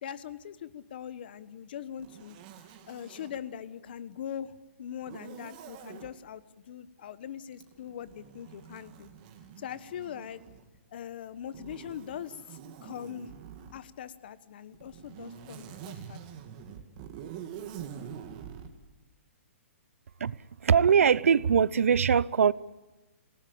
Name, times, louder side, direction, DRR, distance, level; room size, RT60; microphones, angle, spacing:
voice 1, 0.0-2.4 2.9-4.5 4.8-6.4 6.7-9.1 9.6-10.4 10.9-12.3 12.8-13.3 13.7-16.2, left 9 dB, 45° left, 1.2 m, -41 dB
Zipper (clothing), 2.0-3.4 5.0-6.1 7.5-10.8 11.5-13.8 14.7-18.7, right 8 dB, 30° right, 2.3 m, -46 dB
voice 2, 20.6-22.5, right 7 dB, 80° right, 0.8 m, -22 dB
28.0 x 18.0 x 8.6 m
hypercardioid pair, 170°, 7 cm